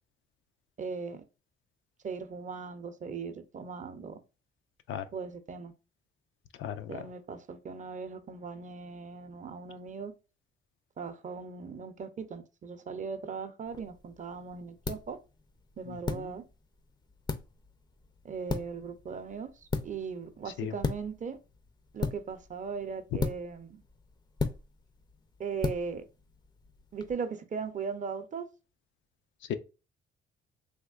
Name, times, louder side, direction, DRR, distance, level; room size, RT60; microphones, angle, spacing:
voice 1, 0.8-1.2 2.0-4.2 5.1-5.7 6.9-10.1 11.0-15.2 15.8-16.4 18.2-19.5 19.8-21.4 21.9-23.8 25.4-26.0 26.9-28.5, right 5 dB, 40° right, 0.6 m, -38 dB
voice 2, 6.6-7.1 15.9-16.3 20.6-20.7 29.5-29.6, left 9 dB, 80° left, 0.5 m, -36 dB
sound 1, 13.7-27.1, left 4 dB, 20° left, 0.4 m, -38 dB
3.5 x 2.9 x 2.3 m
cardioid pair, 90°, 20 cm